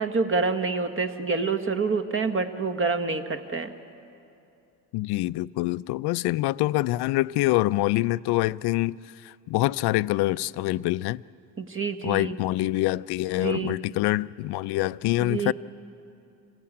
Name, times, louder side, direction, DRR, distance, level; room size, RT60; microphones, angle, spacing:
voice 1, 0.0-3.7 11.6-12.3 13.4-13.8 15.2-15.5, right 4 dB, 30° right, 1.5 m, -27 dB
voice 2, 4.9-9.0 9.2-11.2 12.0-15.5, left 18 dB, 70° left, 0.5 m, -25 dB
26.0 x 16.0 x 8.7 m
cardioid pair, 100°, 40 cm